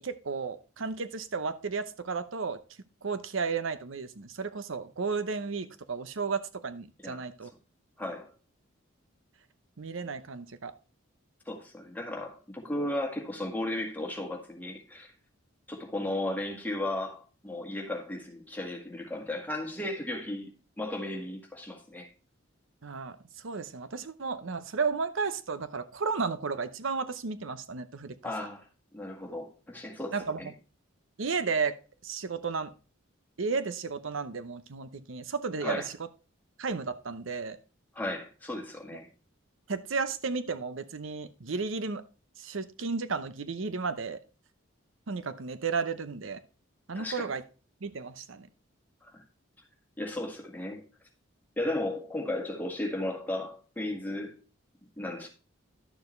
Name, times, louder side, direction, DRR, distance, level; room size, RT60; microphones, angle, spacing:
voice 1, 0.0-2.6 3.0-7.5 9.8-10.7 22.8-23.2 23.4-28.2 30.1-30.5 31.2-31.8 32.0-32.7 33.4-35.9 36.6-37.6 39.7-42.0 42.4-44.2 45.1-46.4 46.9-47.4 47.8-48.5, right 5 dB, 75° right, 0.7 m, -33 dB
voice 2, 8.0-8.3 11.4-15.1 15.7-20.5 20.8-22.1 28.2-28.7 28.9-30.5 35.6-35.9 37.9-39.1 46.9-47.3 49.0-49.2 50.0-50.8 51.6-54.4 55.0-55.3, left 1 dB, 10° left, 1.7 m, -35 dB
11.5 x 7.0 x 3.2 m
head